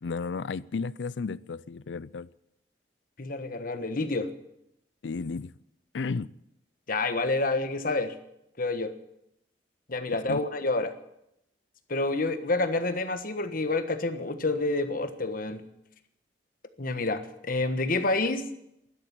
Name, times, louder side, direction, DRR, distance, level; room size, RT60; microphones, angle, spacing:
voice 1, 0.0-2.3 5.0-5.5 5.9-6.3 10.3-10.4, left 4 dB, 85° left, 0.5 m, -33 dB
voice 2, 3.2-4.3 6.9-8.2 8.6-8.9 9.9-10.9 11.9-15.6 16.8-18.4, left 2 dB, 50° left, 1.3 m, -28 dB
12.0 x 11.5 x 10.0 m
head